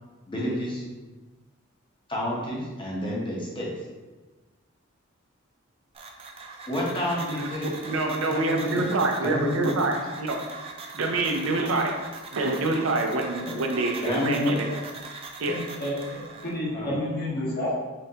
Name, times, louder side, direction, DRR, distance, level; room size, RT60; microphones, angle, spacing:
voice 1, 0.3-0.8 2.1-3.7 6.7-8.9 9.2-9.7 13.4-13.6 14.0-14.5 16.7-16.9, left 1 dB, 25° left, -4 dB, 0.8 m, -30 dB
sound 1, 5.9-16.6, right 3 dB, 30° right, 0.4 m, -41 dB
voice 2, 7.9-10.3 10.9-11.9 12.3-14.7 15.4-15.6, right 2 dB, 75° right, 2 dB, 0.5 m, -26 dB
voice 3, 15.4-17.7, left 1 dB, 50° left, -5 dB, 1.0 m, -30 dB
3.8 x 3.4 x 2.8 m, 1.2 s
head